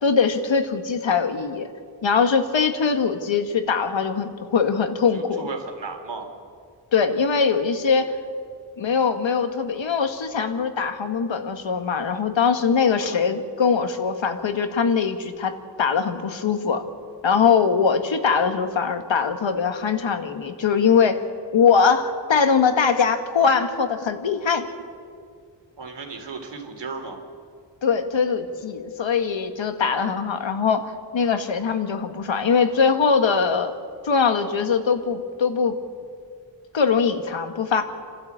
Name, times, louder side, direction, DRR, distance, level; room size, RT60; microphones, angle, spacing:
voice 1, 0.0-1.7 2.0-5.5 6.9-8.2 8.8-16.8 17.2-21.2 21.5-24.6 27.8-33.7 34.0-35.8 36.7-37.8, left 6 dB, 90° left, 7 dB, 1.8 m, -22 dB
voice 2, 5.1-6.3 13.0-13.2 25.8-27.2, right 4 dB, 70° right, 4 dB, 3.4 m, -35 dB
30.0 x 13.0 x 8.7 m, 2.2 s
wide cardioid pair, 120°, 44 cm